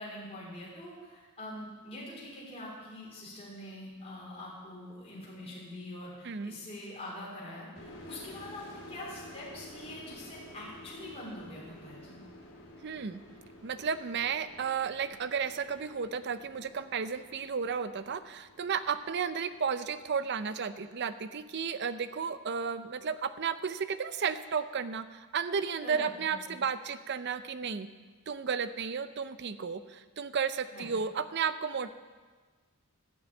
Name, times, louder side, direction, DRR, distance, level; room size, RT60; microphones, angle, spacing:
voice 1, 0.0-12.2 25.8-26.4 30.7-30.9, left 1 dB, 25° left, -5 dB, 3.6 m, -44 dB
voice 2, 6.2-6.5 12.8-13.2 13.6-27.9 28.3-31.9, right 6 dB, 50° right, 13 dB, 0.5 m, -33 dB
sound 1, 7.8-21.2, left 1 dB, 60° left, 3.7 m, -52 dB
12.5 x 6.2 x 8.2 m, 1.4 s
head